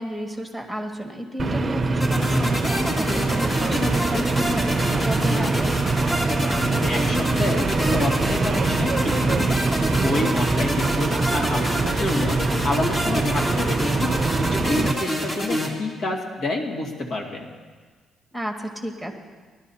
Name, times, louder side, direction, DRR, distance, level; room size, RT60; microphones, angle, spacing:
voice 1, 0.0-5.7 18.3-19.1, equal, 10° left, 1 dB, 1.8 m, -31 dB
sound 1, 1.4-14.9, right 3 dB, 30° right, 0.7 m, -23 dB
sound 2, 2.0-15.7, left 1 dB, 30° left, 2.0 m, -28 dB
voice 2, 6.9-9.5 9.9-14.0 14.4-17.5, left 1 dB, 65° left, 0 dB, 2.0 m, -28 dB
19.0 x 12.0 x 2.8 m, 1.5 s
cardioid pair, 90°, 0 cm